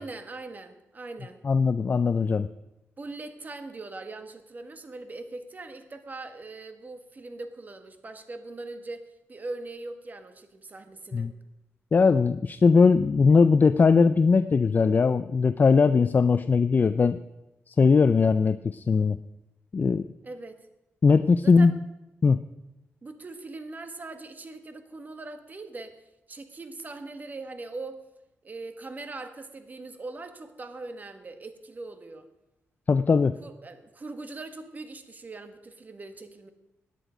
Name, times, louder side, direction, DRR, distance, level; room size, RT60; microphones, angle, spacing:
voice 1, 0.0-1.4 3.0-11.3 20.2-20.6 21.4-21.8 23.0-26.0 26.3-28.0 28.4-32.3 33.4-36.5, right 3 dB, 35° right, 8 dB, 1.6 m, -41 dB
voice 2, 1.4-2.5 11.1-11.3 11.9-17.2 17.7-19.2 19.7-20.1 21.0-21.7 22.2-22.4 32.9-33.3, left 4 dB, 40° left, 13 dB, 0.5 m, -20 dB
17.0 x 10.0 x 5.1 m, 0.94 s
cardioid pair, 85°, 5 cm